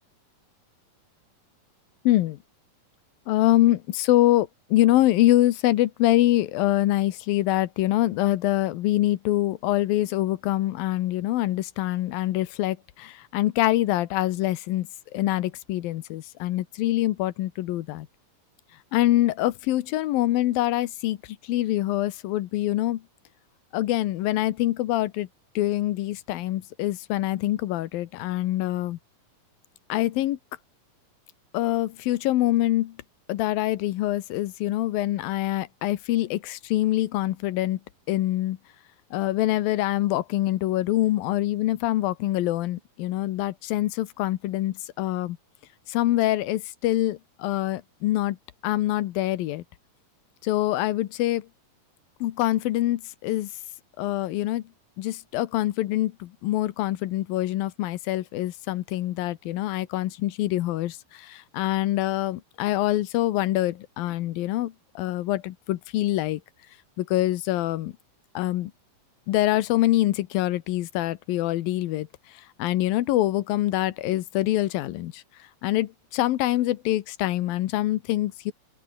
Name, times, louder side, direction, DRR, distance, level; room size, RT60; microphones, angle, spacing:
voice 1, 2.0-2.4 3.3-18.1 18.9-21.2 21.4-23.0 23.7-25.3 25.6-29.0 29.9-30.4 31.5-33.0 33.3-37.8 38.1-38.6 39.1-45.4 45.9-48.4 48.6-49.6 50.4-51.5 52.2-53.5 54.0-54.6 55.0-66.4 67.0-67.9 68.3-68.7 69.3-72.1 72.6-75.2 75.6-78.5, left 15 dB, 85° left, 2.9 m, -25 dB
open air
omnidirectional pair, 4.0 m